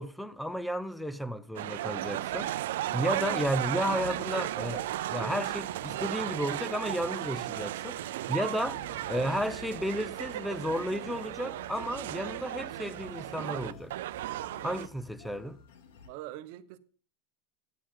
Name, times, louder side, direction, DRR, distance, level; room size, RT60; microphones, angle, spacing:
voice 1, 0.0-13.9 14.6-15.6, equal, ahead, 0.6 m, -33 dB
sound 1, 1.5-14.9, right 14 dB, 80° right, 0.5 m, -35 dB
sound 2, 3.0-16.1, left 5 dB, 85° left, 2.6 m, -57 dB
sound 3, 8.6-15.7, left 4 dB, 60° left, 3.4 m, -55 dB
voice 2, 16.0-16.8, right 14 dB, 55° right, 1.1 m, -44 dB
14.0 x 10.0 x 3.8 m
supercardioid pair, 150°, 0 cm